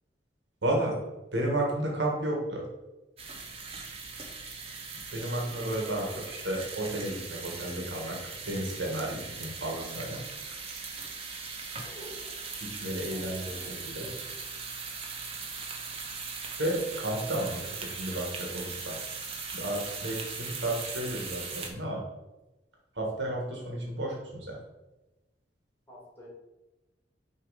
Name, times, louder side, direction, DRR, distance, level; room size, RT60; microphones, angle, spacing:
voice 1, 0.6-1.0 1.3-2.6 5.1-8.2 8.4-10.2 12.6-14.1 16.6-19.0 19.5-22.0 22.9-24.6, right 1 dB, 85° right, -1 dB, 1.5 m, -32 dB
sound 1, 3.2-21.7, right 4 dB, 35° right, 0.9 m, -39 dB
voice 2, 6.0-6.4 11.8-12.3 13.0-14.3 25.9-26.3, equal, 15° left, -6 dB, 2.1 m, -48 dB
6.4 x 3.3 x 4.9 m, 1.0 s
head